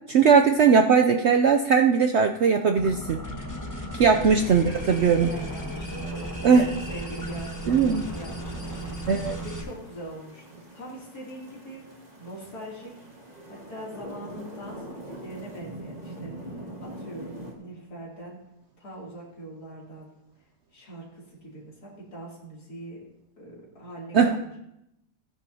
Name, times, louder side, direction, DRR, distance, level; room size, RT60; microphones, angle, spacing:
voice 1, 0.1-3.2 4.0-5.3 6.4-6.7 7.7-8.0 9.1-9.4 24.1-24.4, right 6 dB, 65° right, 5 dB, 0.7 m, -19 dB
sound 1, 2.8-9.6, right 1 dB, 15° left, 1.0 m, -35 dB
sound 2, 4.2-17.5, right 1 dB, 25° right, 1.6 m, -44 dB
voice 2, 5.2-6.3 6.9-11.8 12.2-12.9 13.5-18.4 18.8-20.1 20.7-23.0 23.4-24.6, right 1 dB, 75° left, -4 dB, 3.4 m, -42 dB
15.5 x 9.9 x 2.8 m, 0.84 s
omnidirectional pair, 1.7 m